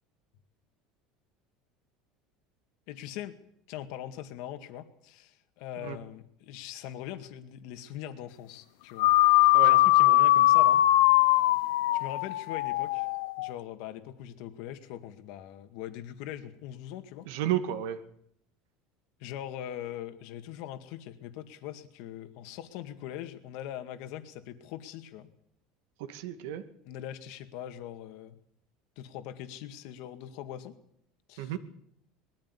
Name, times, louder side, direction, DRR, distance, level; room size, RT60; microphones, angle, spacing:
voice 1, 2.9-3.4 3.7-9.1 9.4-10.8 11.9-13.1 13.4-17.3 19.2-25.3 26.9-28.4 29.0-30.8 31.3-31.6, left 11 dB, 65° left, 8 dB, 2.0 m, -41 dB
sound 1, 9.0-13.5, left 16 dB, 85° left, 0.8 m, -21 dB
voice 2, 17.3-18.0 26.0-26.6 31.4-31.6, right 11 dB, 80° right, 8 dB, 2.2 m, -32 dB
21.0 x 14.0 x 9.9 m, 0.73 s
cardioid pair, 155°, 0 cm